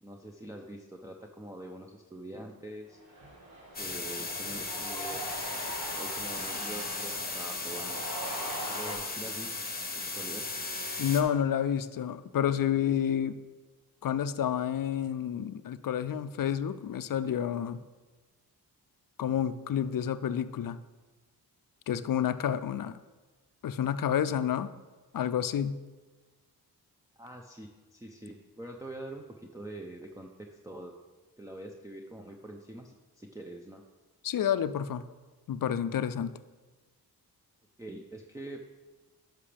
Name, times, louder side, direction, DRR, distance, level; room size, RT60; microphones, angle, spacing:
voice 1, 0.0-3.0 3.7-8.0 8.7-9.5 10.0-10.5 27.2-30.9 31.4-33.8 37.8-38.6, right 1 dB, 10° right, 2 dB, 0.6 m, -45 dB
Cheering, 2.9-8.9, right 1 dB, 65° right, 2.6 m, -41 dB
sound 1, 3.7-11.2, left 3 dB, 25° left, 1.1 m, -36 dB
voice 2, 11.0-13.4 14.0-17.8 19.2-20.8 21.9-23.0 23.6-24.7 25.1-25.8 34.2-35.1 35.5-36.3, left 9 dB, 55° left, 14 dB, 0.5 m, -29 dB
11.0 x 5.9 x 3.4 m, 1.3 s
cardioid pair, 65°, 39 cm